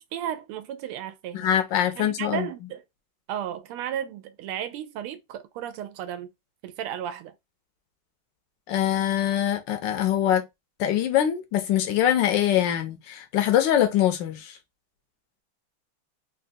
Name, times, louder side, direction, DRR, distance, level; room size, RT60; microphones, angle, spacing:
voice 1, 0.1-1.5 2.0-2.8 3.3-6.3 6.6-7.3, right 10 dB, 85° right, 1.5 m, -34 dB
voice 2, 1.3-2.5 8.7-10.4 10.8-14.5, left 11 dB, 75° left, 1.1 m, -23 dB
4.0 x 2.4 x 2.5 m
omnidirectional pair, 2.4 m